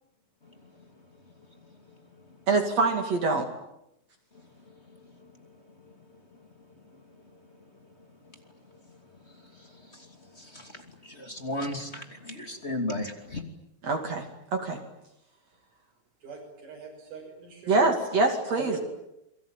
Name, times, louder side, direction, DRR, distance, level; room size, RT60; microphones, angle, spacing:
voice 1, 0.4-1.2 1.5-2.5 4.3-13.4, left 1 dB, 20° left, 5 dB, 2.6 m, -40 dB
voice 2, 2.5-3.5 13.8-14.3 14.5-14.8 17.7-18.8, right 3 dB, 50° right, 4 dB, 3.4 m, -24 dB
voice 3, 16.2-17.8 18.5-18.8, right 4 dB, 85° right, -3 dB, 8.7 m, -41 dB
28.5 x 23.0 x 9.0 m, 0.84 s
omnidirectional pair, 4.2 m